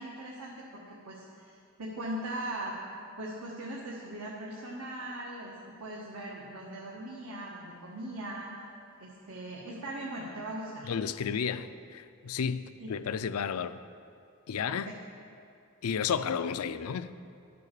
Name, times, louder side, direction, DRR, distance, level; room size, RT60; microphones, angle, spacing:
voice 1, 0.0-2.8 3.2-8.5 9.0-10.9 12.8-12.9 14.6-14.9, right 1 dB, 85° right, -4 dB, 1.5 m, -40 dB
voice 2, 10.9-13.8 14.5-14.9 15.8-17.1, left 7 dB, 90° left, 13 dB, 0.4 m, -32 dB
12.5 x 6.9 x 6.7 m, 2.4 s
head